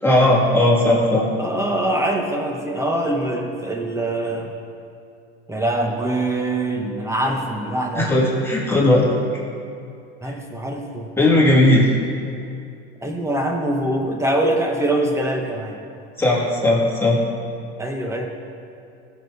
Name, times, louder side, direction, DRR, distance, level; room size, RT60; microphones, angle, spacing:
voice 1, 0.0-1.2 7.9-9.1 11.2-11.9 16.2-17.2, left 1 dB, 5° left, -5 dB, 2.6 m, -16 dB
voice 2, 1.4-4.5 5.5-8.1 10.2-11.1 13.0-15.8 17.8-18.3, right 1 dB, 10° right, 1 dB, 1.4 m, -23 dB
16.0 x 7.0 x 3.6 m, 2.5 s
supercardioid pair, 105°, 31 cm